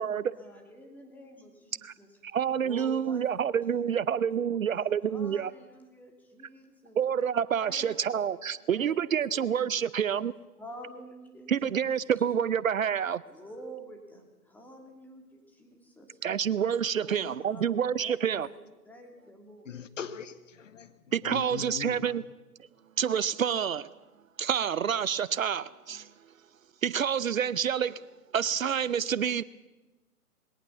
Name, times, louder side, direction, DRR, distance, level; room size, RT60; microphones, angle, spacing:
voice 1, 0.0-2.1 2.6-7.0 7.6-9.8 10.6-12.2 13.3-16.2 16.9-19.7, right 1 dB, 5° left, 2.9 m, -49 dB
voice 2, 2.2-5.5 7.0-10.3 11.5-13.2 16.2-18.5 21.1-22.2 23.0-23.9 24.4-26.1 26.8-28.0 28.3-29.4, right 8 dB, 60° right, 0.7 m, -28 dB
voice 3, 19.7-20.9 21.2-22.2, left 7 dB, 55° left, 1.6 m, -40 dB
21.5 x 18.0 x 7.0 m
figure-of-eight pair, 130°, 46 cm